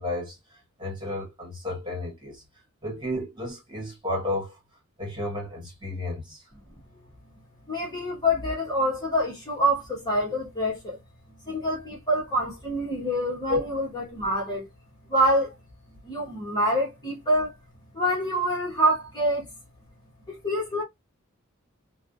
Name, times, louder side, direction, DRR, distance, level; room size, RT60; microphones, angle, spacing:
voice 1, 0.0-2.4 2.8-4.6 5.0-6.4 13.5-13.6, left 1 dB, 20° right, 1.8 m, -32 dB
voice 2, 7.7-11.0 11.5-14.6 15.1-15.5 16.0-17.6 17.9-19.5 20.3-20.8, equal, 20° left, 1.3 m, -26 dB
3.5 x 2.4 x 2.4 m
head